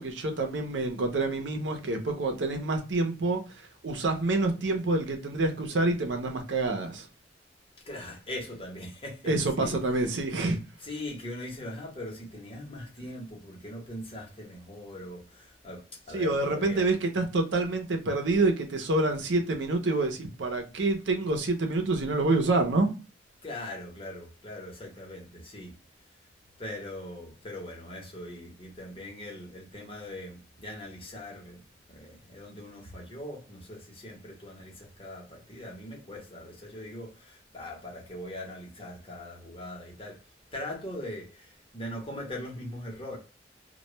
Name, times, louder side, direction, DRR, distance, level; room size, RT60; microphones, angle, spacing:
voice 1, 0.0-3.4 3.8-7.1 9.2-10.6 16.1-22.9, right 2 dB, 85° right, 0.7 m, -27 dB
voice 2, 7.9-9.8 10.8-16.9 23.4-25.8 26.6-31.6 31.9-40.2 40.5-43.2, left 1 dB, 30° left, 1.0 m, -41 dB
2.3 x 2.2 x 2.9 m
head